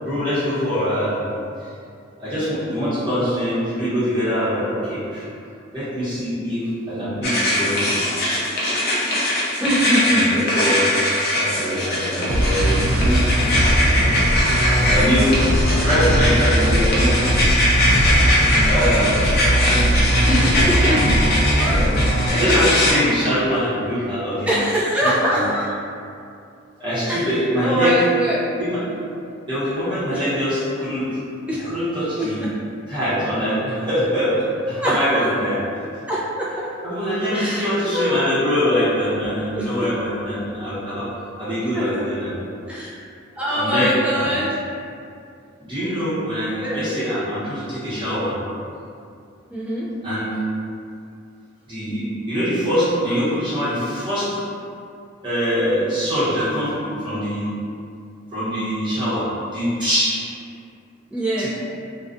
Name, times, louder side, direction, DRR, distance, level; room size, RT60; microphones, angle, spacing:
voice 1, 0.0-1.2 2.2-5.3 5.7-8.0 8.4-9.4 10.1-10.9 11.3-13.3 14.9-15.3 15.8-17.2 17.5-17.6 18.6-20.2 20.8-21.0 21.6-24.5 25.0-25.4 26.8-27.9 28.6-28.8 29.5-31.1 31.6-32.5 32.9-34.4 34.6-35.5 36.8-41.1 41.4-42.4 43.6-44.2 45.6-48.4 50.0-50.4 51.7-54.4 55.2-57.5 58.3-60.3 61.4-61.5, equal, 25° right, -13 dB, 0.9 m, -23 dB
sound 1, 7.2-22.9, left 1 dB, 50° left, 0.5 m, -21 dB
voice 2, 9.6-10.2 20.3-21.2 21.6-21.8 24.5-25.7 27.1-27.3 27.6-28.4 30.1-30.2 31.5-31.7 32.2-32.5 34.8-35.3 36.1-36.7 37.3-38.3 39.5-39.8 40.2-40.3 41.7-42.0 42.7-43.1 43.4-44.5 46.6-46.8 49.5-49.9 61.1-61.5, equal, 5° right, -8 dB, 0.4 m, -23 dB
sound 2, 12.3-22.3, equal, 80° right, 0.4 m, -19 dB
2.4 x 2.3 x 2.5 m, 2.5 s
head